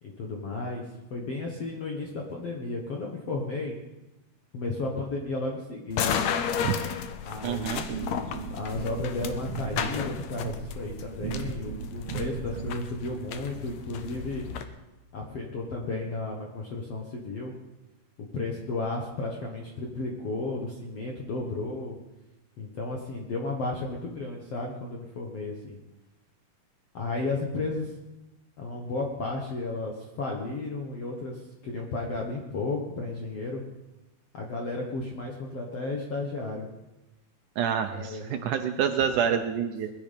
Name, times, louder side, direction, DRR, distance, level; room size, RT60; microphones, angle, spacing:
voice 1, 0.0-3.8 4.5-6.2 7.2-14.4 15.1-17.5 18.3-22.0 22.6-25.8 26.9-27.9 28.6-33.6 34.3-36.7 37.9-38.5 39.0-39.4, left 2 dB, 55° left, -1 dB, 1.9 m, -33 dB
sound 1, 5.9-14.6, left 7 dB, 75° left, 1.6 m, -33 dB
voice 2, 7.4-7.9 37.6-39.9, right 8 dB, 75° right, 6 dB, 1.8 m, -27 dB
sound 2, 7.5-12.9, right 6 dB, 60° right, 1.9 m, -37 dB
21.0 x 11.5 x 5.3 m, 1.0 s
omnidirectional pair, 4.4 m